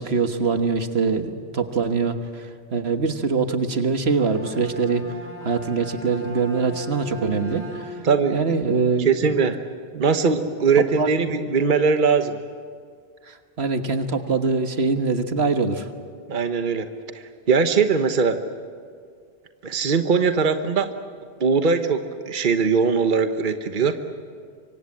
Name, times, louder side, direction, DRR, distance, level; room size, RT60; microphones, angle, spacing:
voice 1, 0.0-5.1 5.4-8.0 8.3-9.1 9.9-10.0 10.8-11.3 13.3-15.9, right 4 dB, 80° right, 8 dB, 1.7 m, -23 dB
Bowed string instrument, 4.0-8.3, left 1 dB, 10° right, 4.8 m, -37 dB
voice 2, 8.0-8.6 9.0-9.6 10.0-12.4 16.3-16.8 17.1-18.4 19.6-20.9 21.4-24.0, right 5 dB, 50° right, 8 dB, 1.3 m, -21 dB
25.5 x 24.5 x 8.6 m, 2.1 s
omnidirectional pair, 1.1 m